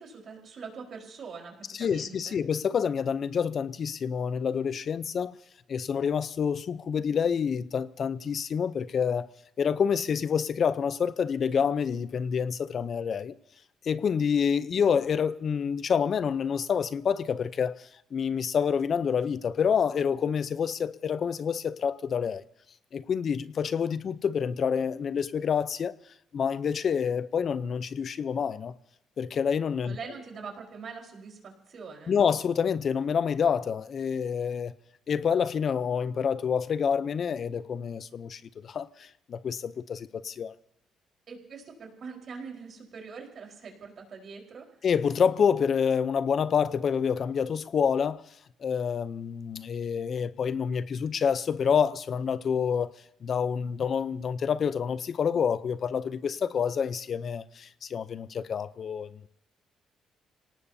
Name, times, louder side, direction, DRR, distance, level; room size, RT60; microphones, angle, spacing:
voice 1, 0.0-2.4 29.8-32.1 41.3-44.7, right 5 dB, 50° right, 4.3 m, -43 dB
voice 2, 1.7-5.4 5.7-9.3 9.6-13.3 13.8-22.4 22.9-25.9 26.3-28.7 29.2-30.0 32.1-34.7 35.1-40.5 44.8-48.2 48.6-52.9 53.2-59.1, left 7 dB, 50° left, 0.6 m, -27 dB
27.5 x 18.0 x 2.8 m
cardioid pair, 105°, 0 cm